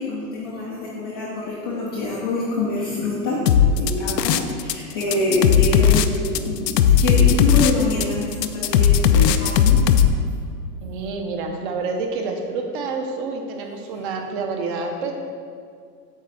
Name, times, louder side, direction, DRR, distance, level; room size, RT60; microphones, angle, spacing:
voice 1, 0.0-3.4 3.8-9.8 10.8-10.9 13.9-14.0, left 2 dB, 20° left, -7 dB, 0.4 m, -25 dB
sound 1, 3.5-4.7 5.0-10.1, left 9 dB, 75° left, 0.6 m, -16 dB
voice 2, 10.8-15.1, right 4 dB, 30° right, 3 dB, 0.7 m, -28 dB
8.2 x 3.2 x 6.2 m, 2.2 s
hypercardioid pair, 145°, 49 cm